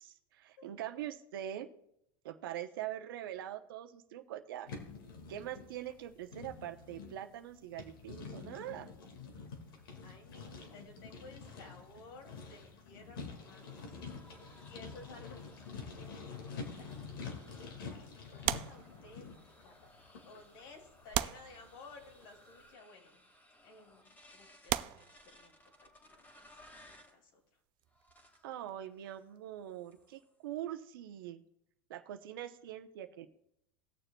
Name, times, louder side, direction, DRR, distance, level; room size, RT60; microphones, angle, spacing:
voice 1, 0.0-1.7 2.2-4.7 5.3-8.9 28.4-31.4 31.9-33.3, right 12 dB, 80° right, 8 dB, 0.8 m, -43 dB
sound 1, 4.7-22.3, left 5 dB, 90° left, 1.9 m, -48 dB
voice 2, 10.0-14.0 14.6-23.2 23.6-25.6 25.8-26.5 26.8-27.4, left 3 dB, 75° left, 2 dB, 2.5 m, -56 dB
sound 2, 13.4-27.2 27.9-28.5 29.0-29.3 29.6-30.3, left 1 dB, 15° left, 1.8 m, -62 dB
sound 3, 18.4-19.5 20.3-20.4 21.1-22.2 23.2-23.4 24.0-24.1 24.7-25.9 27.8-29.6 29.8-30.1, right 15 dB, 45° right, 0.4 m, -38 dB
19.5 x 6.7 x 2.3 m, 0.78 s
supercardioid pair, 120°, 12 cm